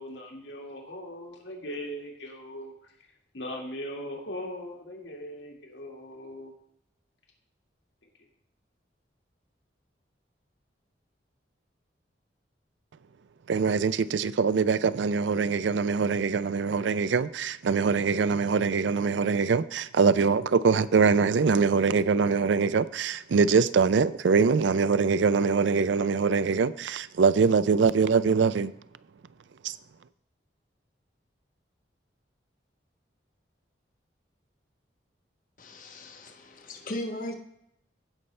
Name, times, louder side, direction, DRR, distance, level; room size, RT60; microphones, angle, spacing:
voice 1, 0.0-2.9 3.3-6.5, equal, 75° left, 1.8 m, -39 dB
voice 2, 13.5-28.7 29.6-29.8, right 5 dB, 80° right, 0.4 m, -23 dB
voice 3, 35.6-37.3, left 1 dB, 45° left, 1.1 m, -37 dB
16.0 x 5.5 x 3.2 m
head